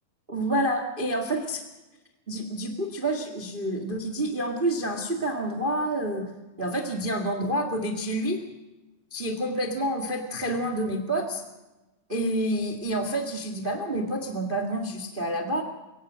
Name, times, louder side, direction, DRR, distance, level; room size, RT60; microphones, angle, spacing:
voice 1, 0.3-1.6 2.3-6.3 6.6-8.4 9.1-11.4 12.1-15.6, right 1 dB, 75° right, 5 dB, 0.5 m, -28 dB
23.0 x 18.0 x 6.3 m, 1.1 s
omnidirectional pair, 4.5 m